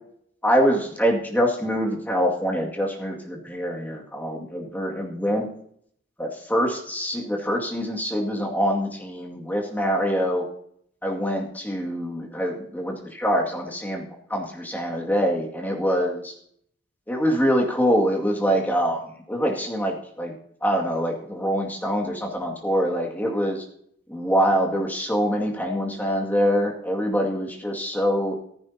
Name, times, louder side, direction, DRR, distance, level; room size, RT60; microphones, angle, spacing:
voice 1, 0.4-5.5 6.2-10.5 11.0-14.0 14.3-16.2 17.1-19.0 19.3-20.3 20.6-23.6 24.1-28.4, equal, 10° left, -1 dB, 2.2 m, -24 dB
15.0 x 14.5 x 2.8 m, 0.66 s
head